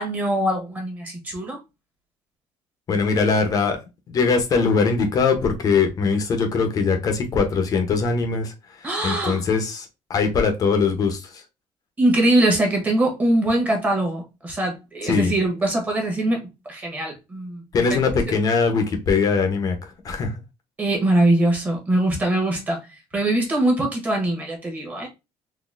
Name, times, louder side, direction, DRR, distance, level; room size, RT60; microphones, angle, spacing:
voice 1, 0.0-1.6 8.8-9.4 12.0-17.6 17.9-18.0 20.8-25.1, right 1 dB, 15° right, 1.3 m, -22 dB
voice 2, 2.9-3.8 4.1-11.4 15.0-15.3 17.7-20.4, left 5 dB, 35° left, 0.9 m, -21 dB
4.0 x 2.7 x 2.6 m
cardioid pair, 170°, 11 cm